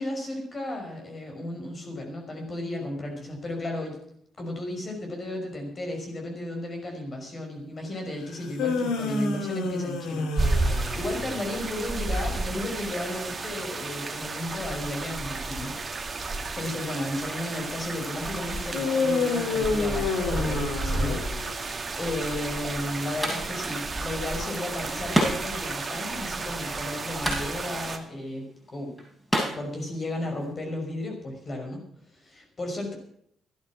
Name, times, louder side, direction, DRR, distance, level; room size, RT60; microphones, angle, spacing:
voice 1, 0.0-4.0 4.4-15.8 16.5-28.5 28.7-29.0 29.5-32.9, left 1 dB, 35° left, 2 dB, 5.8 m, -34 dB
sound 1, 8.3-11.6 18.7-21.7, left 4 dB, 90° left, 2.5 m, -28 dB
sound 2, 10.4-28.0, right 3 dB, 30° right, 2.1 m, -32 dB
sound 3, 23.2-30.5, equal, ahead, 8.0 m, -33 dB
13.5 x 10.5 x 7.5 m, 0.68 s
cardioid pair, 90°, 0 cm